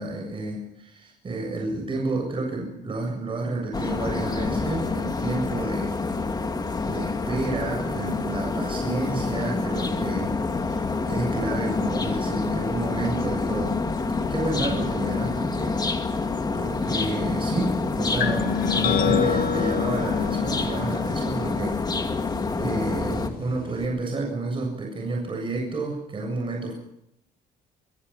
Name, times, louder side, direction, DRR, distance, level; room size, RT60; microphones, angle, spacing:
voice 1, 0.0-6.0 6.8-14.0 14.3-16.3 16.5-22.1 22.6-26.7, right 2 dB, 30° right, 1 dB, 7.7 m, -30 dB
sound 1, 3.7-23.3, left 3 dB, 25° left, 2.6 m, -27 dB
sound 2, 18.2-23.9, left 8 dB, 60° left, 1.7 m, -29 dB
24.5 x 23.0 x 5.9 m, 0.77 s
cardioid pair, 110°, 17 cm